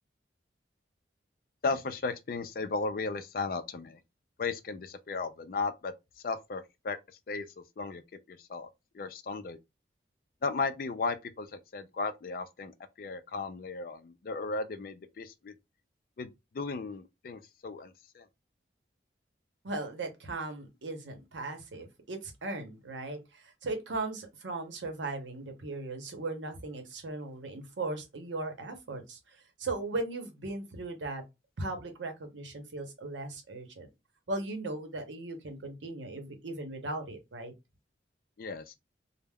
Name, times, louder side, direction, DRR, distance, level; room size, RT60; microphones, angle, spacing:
voice 1, 1.6-4.0 4.4-5.9 6.2-7.0 7.3-8.0 8.3-8.7 8.9-9.6 10.4-12.7 13.0-15.5 16.2-18.3 38.4-38.8, left 4 dB, 50° left, 0.4 m, -35 dB
voice 2, 19.6-31.2 31.6-33.9 34.3-37.5, right 2 dB, 85° right, 0.7 m, -38 dB
2.2 x 2.0 x 3.4 m
head